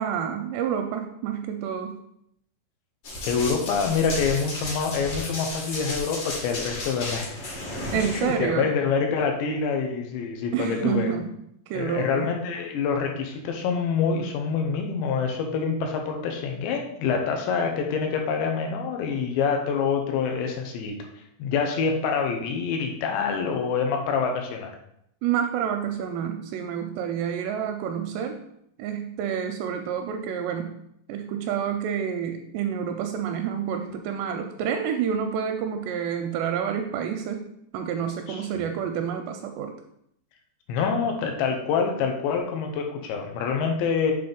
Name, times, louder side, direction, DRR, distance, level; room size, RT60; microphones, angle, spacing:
voice 1, 0.0-2.0 7.9-8.7 10.5-11.3 11.7-12.3 25.2-28.4 28.8-30.8 31.1-37.5 37.7-39.7, right 8 dB, 85° right, 5 dB, 2.5 m, -28 dB
Run, 3.0-8.3, left 1 dB, 50° left, 1.8 m, -34 dB
voice 2, 3.2-7.3 8.1-11.1 11.7-21.0 21.4-24.7 38.3-38.6 40.7-44.1, left 5 dB, 80° left, 3 dB, 3.0 m, -26 dB
7.7 x 3.9 x 5.1 m, 0.74 s
omnidirectional pair, 5.2 m